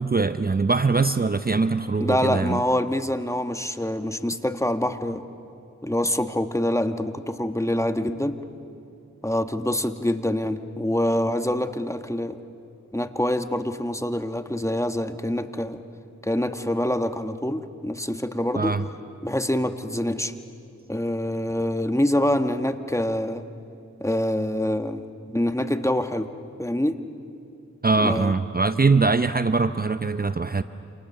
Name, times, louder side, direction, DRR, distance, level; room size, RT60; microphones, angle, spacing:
voice 1, 0.0-2.6 18.6-18.8 27.8-30.6, right 4 dB, 30° right, 11 dB, 0.7 m, -22 dB
voice 2, 2.0-5.2 5.8-8.4 9.2-12.4 12.9-15.8 16.2-18.7 19.2-20.3 20.9-23.5 24.0-25.0 25.3-26.3 26.6-27.0 28.0-28.3, left 1 dB, 10° left, 8 dB, 1.3 m, -25 dB
28.0 x 28.0 x 6.8 m, 2.6 s
cardioid pair, 45°, 30 cm